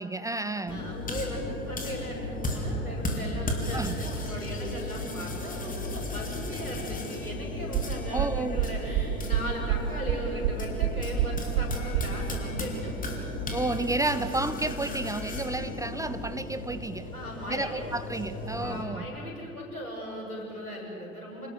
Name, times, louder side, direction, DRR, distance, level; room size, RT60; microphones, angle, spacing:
voice 1, 0.0-1.0 3.7-4.0 8.1-8.6 13.5-17.1 17.5-19.1, right 2 dB, 10° right, 12 dB, 0.7 m, -31 dB
voice 2, 0.6-13.1 17.1-17.8 18.6-21.5, equal, 90° left, -2 dB, 6.9 m, -38 dB
sound 1, 0.7-18.8, left 1 dB, 20° left, 4.3 m, -35 dB
sound 2, 7.7-12.2, right 12 dB, 45° right, 1.2 m, -27 dB
28.0 x 19.5 x 8.1 m, 2.7 s
figure-of-eight pair, 85°, 43 cm